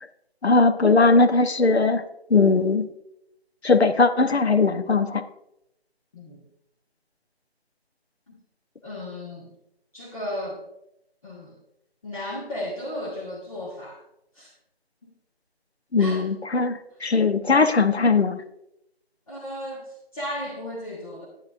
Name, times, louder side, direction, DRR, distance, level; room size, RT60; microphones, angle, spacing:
voice 1, 0.4-2.0 2.3-2.9 3.6-5.2 15.9-18.4, left 4 dB, 85° left, 9 dB, 0.9 m, -19 dB
voice 2, 8.8-9.5 9.9-10.6 11.2-11.6 12.0-14.0 14.3-14.5 16.0-16.2 19.3-21.3, left 1 dB, 35° left, -5 dB, 1.7 m, -34 dB
11.5 x 9.4 x 2.5 m, 0.82 s
figure-of-eight pair, 170°, 31 cm